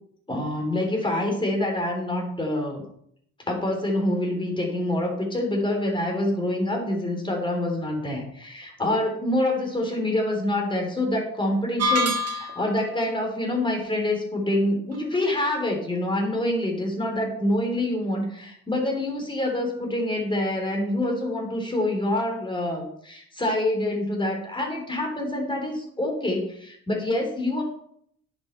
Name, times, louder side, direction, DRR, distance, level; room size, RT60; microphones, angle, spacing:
voice 1, 0.3-2.8 3.5-27.6, left 1 dB, 15° left, 1 dB, 3.6 m, -26 dB
sound 1, 11.8-12.8, left 1 dB, 55° right, 1.7 m, -25 dB
10.5 x 6.7 x 4.5 m, 0.67 s
cardioid pair, 90°, 30 cm